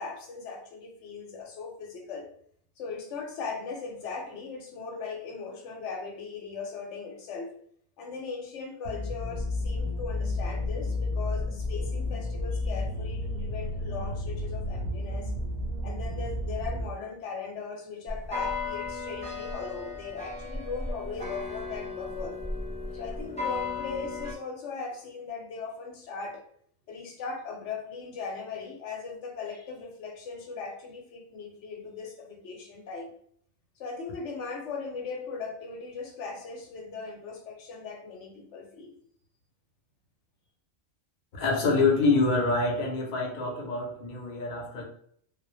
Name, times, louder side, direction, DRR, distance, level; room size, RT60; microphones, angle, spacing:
voice 1, 0.0-2.3 2.8-7.5 8.0-15.3 15.8-22.4 22.9-26.4 26.9-33.1 33.8-39.0, left 4 dB, 90° left, 2 dB, 0.9 m, -39 dB
sound 1, 8.9-16.9, left 2 dB, 55° right, 0.5 m, -31 dB
sound 2, 18.1-24.3, left 4 dB, 10° left, 0.4 m, -35 dB
voice 2, 41.3-44.8, left 3 dB, 50° left, -1 dB, 0.7 m, -26 dB
2.1 x 2.1 x 2.9 m, 0.63 s
omnidirectional pair, 1.2 m